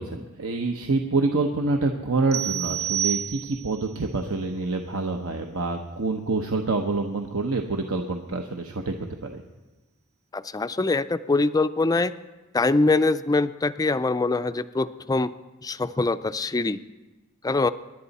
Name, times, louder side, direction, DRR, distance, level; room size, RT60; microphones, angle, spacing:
voice 1, 0.0-8.9 9.2-9.4, right 3 dB, 70° right, 3 dB, 0.9 m, -27 dB
sound 1, 2.3-3.8, right 10 dB, 45° right, 0.4 m, -29 dB
voice 2, 10.3-12.1 12.5-15.3 15.6-16.8 17.4-17.7, left 3 dB, 15° left, 12 dB, 0.4 m, -23 dB
26.5 x 11.0 x 4.1 m, 1.1 s
head